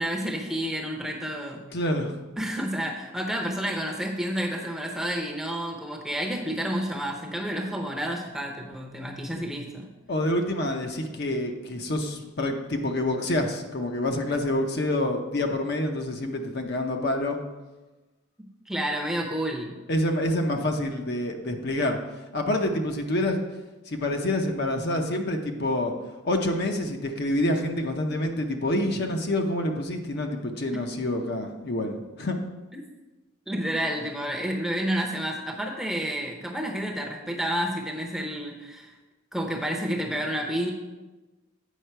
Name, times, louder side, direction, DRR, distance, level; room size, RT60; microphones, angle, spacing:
voice 1, 0.0-1.6 2.4-9.9 18.4-19.7 33.5-38.9 39.3-40.7, equal, ahead, 0 dB, 0.7 m, -30 dB
voice 2, 1.7-2.1 10.1-17.4 19.9-22.0 22.3-23.4 23.9-25.9 26.2-32.4, left 1 dB, 50° left, 3 dB, 0.7 m, -27 dB
8.3 x 5.5 x 4.5 m, 1.2 s
head